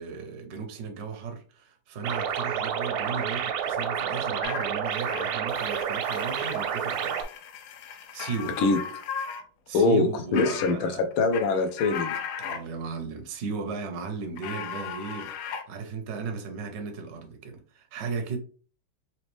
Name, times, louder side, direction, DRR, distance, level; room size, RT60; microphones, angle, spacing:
voice 1, 0.0-7.2 8.1-8.6 9.7-11.0 12.4-18.4, right 5 dB, 65° right, 0.6 m, -36 dB
sound 1, 2.0-7.2, right 8 dB, 90° right, 1.5 m, -29 dB
sound 2, 4.4-9.4 9.7-9.8 10.3-10.7 11.1-12.6 14.4-15.6, left 7 dB, 90° left, 1.5 m, -37 dB
voice 2, 9.7-10.1 10.3-12.2, left 3 dB, 75° left, 1.5 m, -23 dB
4.1 x 3.0 x 3.2 m
omnidirectional pair, 2.3 m